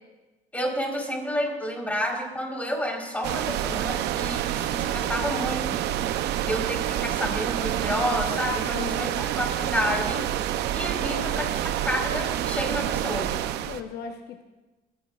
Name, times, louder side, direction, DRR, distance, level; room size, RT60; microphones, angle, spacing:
voice 1, 0.5-5.8 6.4-10.3 10.7-11.5 11.8-13.3, equal, 10° left, 0 dB, 4.1 m, -30 dB
sound 1, 3.2-13.8, right 12 dB, 80° right, 0.7 m, -28 dB
voice 2, 8.7-9.2 10.9-11.4 13.7-14.4, left 7 dB, 70° left, 5 dB, 1.0 m, -37 dB
25.0 x 16.0 x 2.5 m, 1.1 s
cardioid pair, 110°, 17 cm